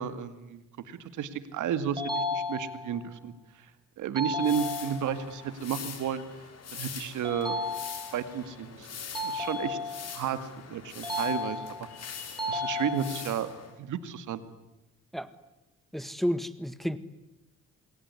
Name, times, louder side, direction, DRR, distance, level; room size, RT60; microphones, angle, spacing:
voice 1, 0.0-3.7 4.0-6.2 6.7-7.6 8.1-11.9 12.5-13.5 13.8-14.4, right 8 dB, 80° right, 11 dB, 2.3 m, -33 dB
sound 1, 2.0-3.0 4.2-5.2 7.2-8.3 9.1-10.2 11.0-11.9 12.4-13.4, left 2 dB, 15° right, 7.8 m, -33 dB
sound 2, 4.4-13.7, left 7 dB, 55° left, 5.3 m, -43 dB
voice 2, 15.9-17.0, equal, ahead, 12 dB, 1.6 m, -31 dB
27.5 x 22.0 x 9.9 m, 0.98 s
cardioid pair, 90°, 30 cm